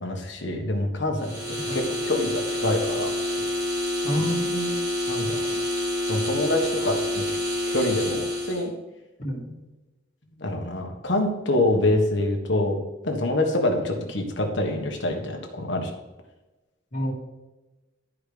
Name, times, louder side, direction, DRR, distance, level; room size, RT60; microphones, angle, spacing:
voice 1, 0.0-3.4 5.1-5.6 6.1-7.4 7.7-8.7 10.4-15.9, left 1 dB, 70° left, 3 dB, 1.4 m, -26 dB
sound 1, 1.2-8.7, left 1 dB, 50° right, 2.6 m, -28 dB
voice 2, 4.0-4.8 9.2-9.5 16.9-17.1, equal, 45° left, -2 dB, 2.1 m, -28 dB
12.5 x 4.9 x 3.4 m, 1.1 s
head